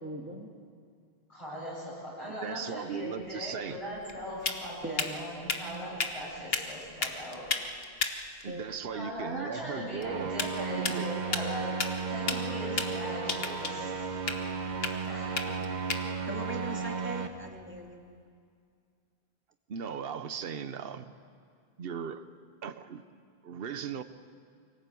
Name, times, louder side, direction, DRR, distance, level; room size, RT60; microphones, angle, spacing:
voice 1, 0.0-0.5 4.8-5.1 8.5-8.6 15.5-15.6 16.3-18.0, right 2 dB, 10° right, 1 dB, 2.2 m, -40 dB
voice 2, 1.3-7.4 8.9-11.7 12.1-14.1 15.1-15.3, equal, 30° left, -8 dB, 8.1 m, -39 dB
voice 3, 2.3-3.8 8.4-10.3 10.6-11.2 19.7-21.1 21.8-22.3 22.6-23.0 23.4-24.0, right 7 dB, 70° right, 11 dB, 1.1 m, -38 dB
sound 1, 3.2-17.9, left 4 dB, 70° left, 1.5 m, -37 dB
sound 2, 10.0-17.3, right 5 dB, 50° right, 1.1 m, -34 dB
24.5 x 17.5 x 8.4 m, 2.2 s
omnidirectional pair, 1.0 m